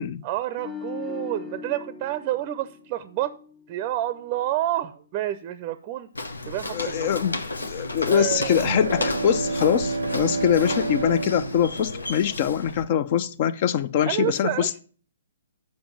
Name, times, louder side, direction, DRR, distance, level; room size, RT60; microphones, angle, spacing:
voice 1, 0.2-3.4 3.7-6.1 6.5-7.2 8.1-9.1 14.1-14.8, right 13 dB, 35° right, 0.5 m, -29 dB
sound 1, 0.6-3.8 4.2-4.4, left 5 dB, 25° left, 0.9 m, -39 dB
Walk footsteps, 6.2-12.9, left 2 dB, 90° left, 0.9 m, -33 dB
voice 2, 6.7-14.7, left 9 dB, 45° left, 0.5 m, -23 dB
Bowed string instrument, 8.5-13.0, right 3 dB, 80° right, 0.6 m, -30 dB
6.9 x 5.2 x 7.2 m
hypercardioid pair, 130°, 0 cm